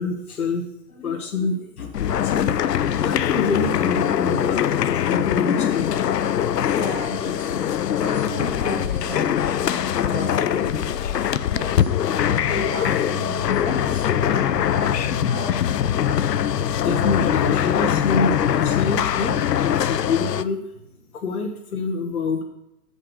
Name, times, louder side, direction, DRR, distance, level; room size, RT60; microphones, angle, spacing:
voice 1, 0.0-6.0 11.0-11.2 12.1-12.4 16.3-20.6 21.1-22.4, left 4 dB, 65° left, 1 dB, 1.4 m, -27 dB
sound 1, 1.9-20.4, left 9 dB, 80° left, 0.7 m, -22 dB
voice 2, 6.6-7.7 8.0-11.9 12.4-15.9, right 1 dB, 15° right, -11 dB, 3.3 m, -35 dB
7.2 x 6.6 x 6.5 m, 0.84 s
hypercardioid pair, 160°, 48 cm